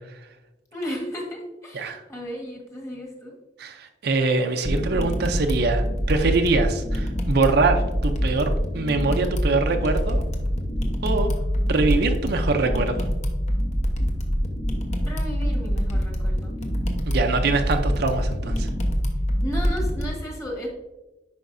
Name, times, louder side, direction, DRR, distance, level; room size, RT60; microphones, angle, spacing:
voice 1, 0.7-3.4 15.0-16.6 19.4-20.7, equal, 15° left, -1 dB, 1.6 m, -34 dB
voice 2, 3.6-10.2 11.0-11.3 11.7-13.1 17.1-18.7, right 3 dB, 60° right, 5 dB, 0.6 m, -23 dB
sound 1, 4.6-20.1, equal, 40° left, 0.9 m, -25 dB
10.0 x 5.0 x 2.6 m, 1.1 s
head